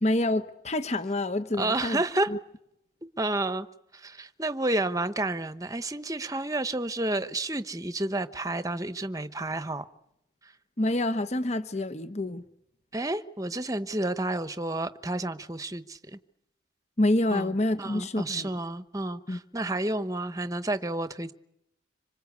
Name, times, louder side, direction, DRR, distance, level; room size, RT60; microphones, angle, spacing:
voice 1, 0.0-2.0 2.3-2.4 10.8-12.4 17.0-18.5 19.3-19.4, left 1 dB, 35° left, 1.0 m, -27 dB
voice 2, 1.6-2.3 3.2-3.7 3.9-9.8 10.4-10.5 12.9-16.2 17.3-21.3, right 2 dB, 15° right, 1.0 m, -30 dB
26.0 x 26.0 x 8.4 m
head